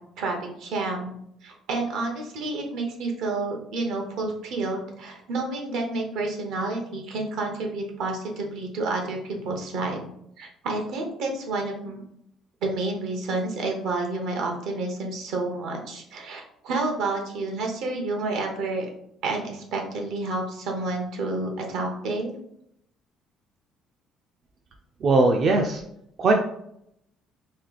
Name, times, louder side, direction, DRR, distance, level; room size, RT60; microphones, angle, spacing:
voice 1, 0.2-1.1 1.4-10.0 10.4-12.0 12.6-18.9 19.2-22.3, right 2 dB, 80° right, 2 dB, 0.9 m, -29 dB
voice 2, 25.0-25.8 26.2-26.3, right 2 dB, 50° right, 2 dB, 0.4 m, -19 dB
3.1 x 2.5 x 3.9 m, 0.73 s
cardioid pair, 95°, 0 cm